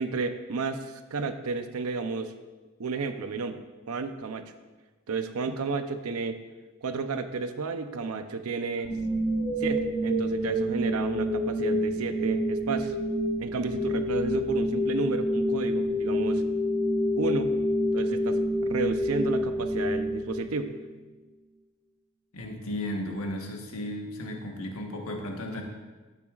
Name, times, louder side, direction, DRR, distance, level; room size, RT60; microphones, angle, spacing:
voice 1, 0.0-2.3 2.8-3.6 3.9-4.4 5.1-6.4 6.8-8.9 9.6-12.9 13.4-16.4 17.2-17.6 17.9-20.7, right 4 dB, 90° right, 8 dB, 0.6 m, -32 dB
sound 1, 8.8-20.9, equal, 15° right, 1.4 m, -28 dB
voice 2, 22.3-25.6, left 1 dB, 85° left, 1 dB, 1.4 m, -34 dB
12.0 x 8.9 x 2.4 m, 1.2 s
head